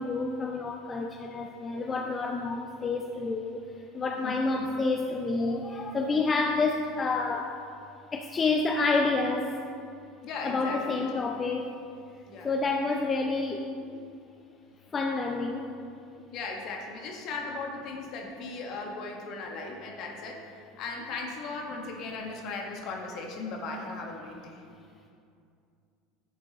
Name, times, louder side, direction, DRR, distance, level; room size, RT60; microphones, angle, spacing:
voice 1, 0.0-3.6 3.9-7.5 8.1-9.6 10.4-11.8 12.4-14.1 14.9-15.7, left 3 dB, 25° left, 3 dB, 0.5 m, -29 dB
voice 2, 4.2-4.7 10.2-11.2 12.2-12.5 16.3-24.6, left 3 dB, 55° left, 1 dB, 1.4 m, -37 dB
10.0 x 7.4 x 3.0 m, 2.4 s
hypercardioid pair, 95°, 0 cm